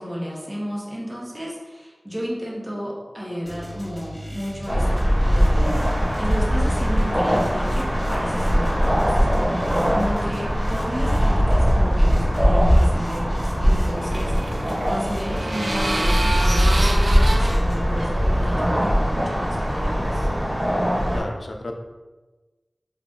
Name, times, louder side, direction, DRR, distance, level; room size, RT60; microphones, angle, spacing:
voice 1, 0.0-20.3, equal, 15° right, -5 dB, 0.8 m, -32 dB
sound 1, 3.4-18.0, equal, 20° left, 1.1 m, -38 dB
sound 2, 4.7-21.2, equal, 40° right, 1.3 m, -21 dB
sound 3, 13.4-19.0, right 1 dB, 60° right, 0.4 m, -28 dB
voice 2, 21.1-21.7, left 1 dB, 80° left, 2 dB, 0.4 m, -32 dB
3.9 x 2.3 x 3.6 m, 1.2 s
wide cardioid pair, 65°, 0 cm